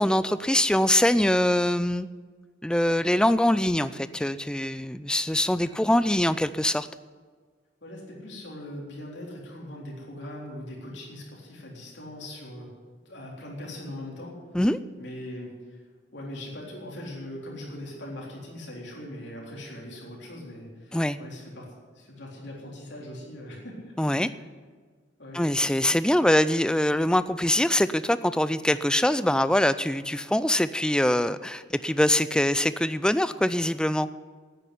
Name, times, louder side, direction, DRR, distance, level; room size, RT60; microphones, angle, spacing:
voice 1, 0.0-2.1 2.6-6.9 14.5-14.8 20.9-21.2 24.0-24.3 25.3-34.1, left 1 dB, 5° left, 14 dB, 0.3 m, -23 dB
voice 2, 7.8-12.7 13.1-14.4 15.0-15.8 16.1-21.7 22.0-24.2 25.2-25.9 31.9-32.0, left 1 dB, 60° left, -2 dB, 3.8 m, -41 dB
10.0 x 9.2 x 9.9 m, 1.5 s
head